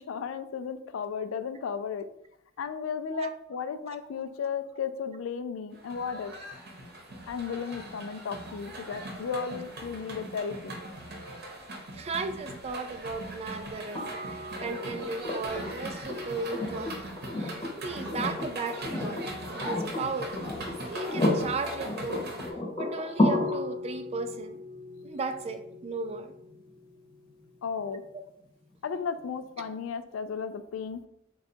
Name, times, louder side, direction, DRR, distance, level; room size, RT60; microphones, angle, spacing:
voice 1, 0.0-2.1 2.6-6.3 7.3-10.8 27.6-28.0 28.8-31.1, left 6 dB, 85° left, 11 dB, 0.3 m, -34 dB
sound 1, 5.7-22.5, right 1 dB, 55° right, 0.8 m, -41 dB
voice 2, 11.9-17.1 17.3-20.3 20.8-22.2 22.8-24.6 25.0-26.3 28.1-28.2, right 3 dB, 30° right, 9 dB, 0.3 m, -36 dB
sound 2, 14.0-27.9 29.6-29.7, left 1 dB, 25° left, 0.8 m, -33 dB
3.8 x 2.3 x 4.3 m, 0.78 s
head